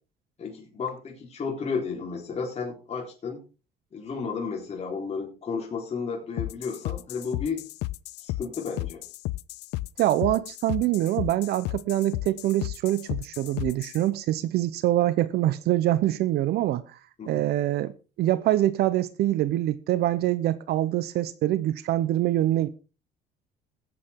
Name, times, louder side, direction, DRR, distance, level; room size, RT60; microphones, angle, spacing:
voice 1, 0.4-3.4 3.9-7.6 8.2-9.0 17.2-17.4, left 5 dB, 40° left, 3.9 m, -33 dB
sound 1, 6.4-14.0, left 18 dB, 85° left, 0.5 m, -33 dB
voice 2, 10.0-16.8 17.3-17.9 18.2-22.7, right 14 dB, 75° right, 0.7 m, -24 dB
19.0 x 8.6 x 3.6 m
cardioid pair, 110°, 17 cm